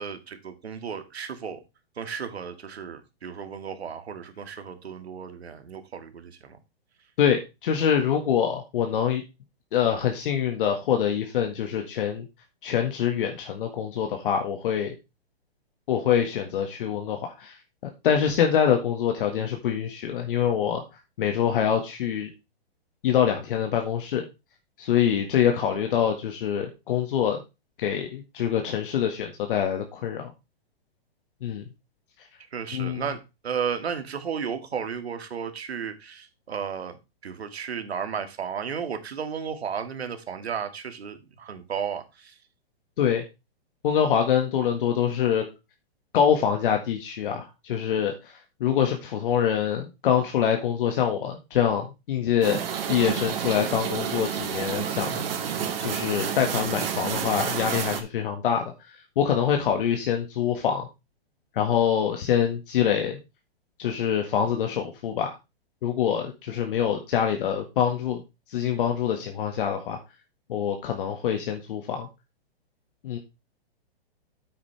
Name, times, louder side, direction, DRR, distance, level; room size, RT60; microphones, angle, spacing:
voice 1, 0.0-1.6 2.0-6.6 25.6-25.8 32.5-37.0 37.2-42.3, right 7 dB, 85° right, 2.1 m, -34 dB
voice 2, 7.2-9.2 9.7-12.3 12.6-14.9 15.9-17.6 17.8-20.8 21.2-22.3 23.0-24.3 24.8-27.4 27.8-30.3 31.4-31.7 32.7-33.0 43.0-43.2 43.8-45.4 46.1-52.6 52.9-55.2 55.8-60.9 61.6-63.2 63.8-65.3 65.8-68.2 68.5-70.0 70.5-72.1 73.0-73.2, left 8 dB, 60° left, 1.8 m, -25 dB
sound 1, 52.4-58.0, right 8 dB, 65° right, 2.5 m, -29 dB
9.2 x 8.7 x 3.4 m
hypercardioid pair, 145°, 31 cm